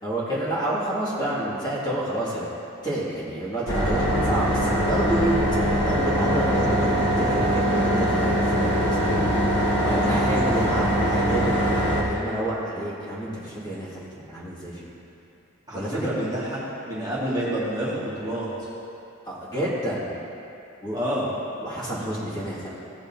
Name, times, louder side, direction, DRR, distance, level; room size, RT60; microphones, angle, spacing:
voice 1, 0.0-2.5 2.8-5.4 5.8-9.0 9.8-11.8 12.1-14.9 15.7-16.0 19.3-20.1 20.8-21.0 21.6-22.8, right 1 dB, 20° left, -8 dB, 2.1 m, -29 dB
sound 1, 3.7-12.0, equal, 55° left, 1.9 m, -22 dB
voice 2, 15.7-16.6 16.9-18.5 20.9-21.3, right 1 dB, 20° right, -9 dB, 1.8 m, -28 dB
16.0 x 6.8 x 2.8 m, 2.7 s
head